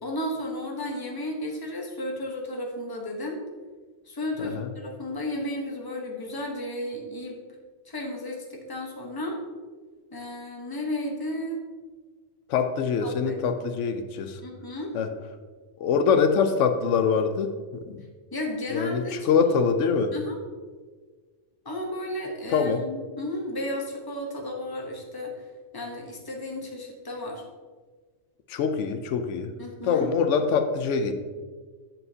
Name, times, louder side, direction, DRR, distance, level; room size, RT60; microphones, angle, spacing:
voice 1, 0.0-3.4 4.1-7.4 7.8-9.4 10.1-11.6 13.0-13.4 14.4-14.9 18.3-19.3 20.1-20.4 21.6-25.5 25.7-27.4 29.6-30.1, left 1 dB, 20° left, 0 dB, 1.0 m, -33 dB
voice 2, 4.4-4.7 12.5-14.4 14.9-15.1 15.8-17.6 17.9-18.0 18.7-20.1 22.5-22.8 28.5-29.5 29.8-31.1, left 6 dB, 85° left, 8 dB, 0.9 m, -24 dB
7.9 x 7.3 x 2.8 m, 1.5 s
omnidirectional pair, 1.2 m